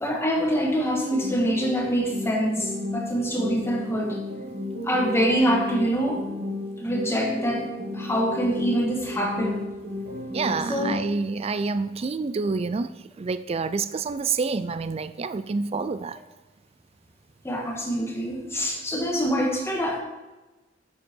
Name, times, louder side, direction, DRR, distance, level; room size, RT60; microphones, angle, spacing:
voice 1, 0.0-4.2 4.8-6.2 6.8-7.6 7.9-9.6 10.7-11.0 17.4-20.0, equal, 15° left, 0 dB, 1.6 m, -25 dB
sound 1, 1.1-11.1, left 1 dB, 55° right, 2.4 m, -33 dB
voice 2, 10.3-12.9 13.2-16.2, right 4 dB, 35° right, 13 dB, 0.4 m, -28 dB
9.9 x 7.7 x 4.6 m, 1.1 s
head